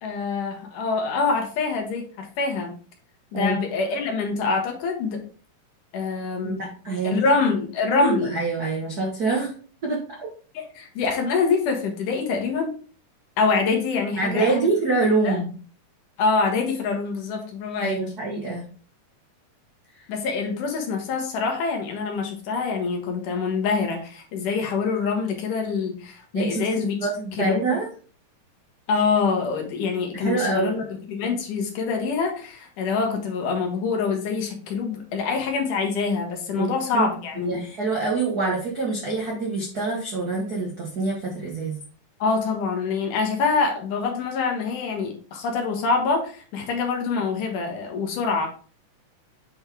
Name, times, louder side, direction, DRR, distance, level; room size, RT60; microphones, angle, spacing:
voice 1, 0.0-2.7 3.3-5.2 5.9-6.7 7.0-8.4 10.5-12.7 13.4-14.7 15.2-15.4 16.2-18.0 20.1-27.0 27.3-27.8 28.9-37.7 42.2-48.5, left 4 dB, 70° left, 2 dB, 2.7 m, -25 dB
voice 2, 6.4-7.2 7.9-9.5 9.8-10.3 14.2-15.5 17.8-18.7 26.3-26.7 27.0-27.9 30.1-30.7 36.5-37.1 37.4-41.8, right 3 dB, 80° right, -2 dB, 0.8 m, -25 dB
7.8 x 4.0 x 3.4 m, 0.41 s
omnidirectional pair, 3.9 m